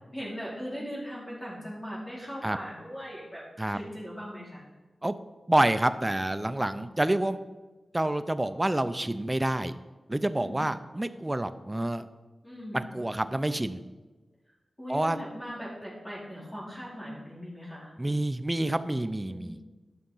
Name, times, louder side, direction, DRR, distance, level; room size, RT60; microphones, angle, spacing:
voice 1, 0.1-4.6 6.7-6.8 10.4-10.6 12.4-12.8 14.8-17.9 19.3-19.6, equal, 15° left, -7 dB, 4.1 m, -39 dB
voice 2, 5.5-7.4 7.9-9.7 10.1-12.1 12.7-13.8 14.9-15.2 18.0-19.6, right 1 dB, 20° right, 11 dB, 0.6 m, -28 dB
11.5 x 6.5 x 5.6 m, 1.2 s
wide cardioid pair, 75°, 0 cm